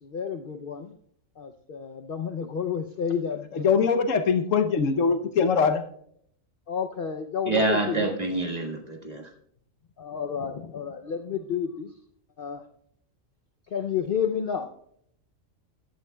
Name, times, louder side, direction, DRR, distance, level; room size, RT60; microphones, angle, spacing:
voice 1, 0.0-1.0 1.4-3.9 6.7-8.1 10.0-12.0 12.4-12.7 13.7-14.7, left 7 dB, 55° left, 0.7 m, -31 dB
voice 2, 3.5-5.8, left 5 dB, 75° left, 1.2 m, -22 dB
voice 3, 7.5-9.3, right 2 dB, 30° right, 1.6 m, -27 dB
15.0 x 11.0 x 2.3 m
omnidirectional pair, 1.3 m